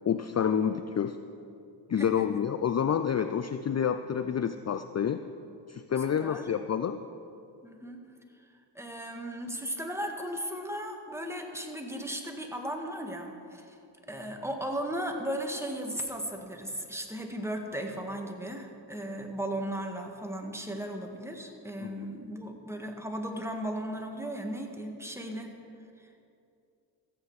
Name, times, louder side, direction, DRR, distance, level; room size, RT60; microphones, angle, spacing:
voice 1, 0.1-1.2 1.9-5.2 5.7-7.0 21.8-21.9, left 8 dB, 35° left, 10 dB, 0.5 m, -28 dB
voice 2, 7.6-8.0 8.8-13.8 14.1-25.5, right 1 dB, 5° right, 2 dB, 1.8 m, -36 dB
14.5 x 8.5 x 4.8 m, 2.6 s
cardioid pair, 50°, 46 cm